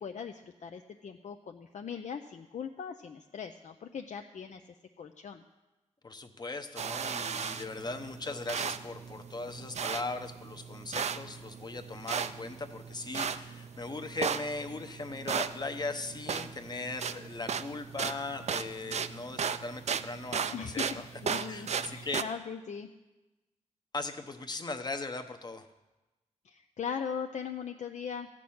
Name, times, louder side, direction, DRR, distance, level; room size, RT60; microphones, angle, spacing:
voice 1, 0.0-4.6 5.0-5.4 20.5-22.9 26.4-28.3, left 7 dB, 70° left, 5 dB, 0.6 m, -39 dB
voice 2, 6.0-22.2 23.9-25.7, left 3 dB, 35° left, 7 dB, 0.9 m, -39 dB
sound 1, 6.8-22.2, right 7 dB, 60° right, 0.5 m, -36 dB
14.0 x 6.1 x 8.6 m, 1.1 s
wide cardioid pair, 140°, 13 cm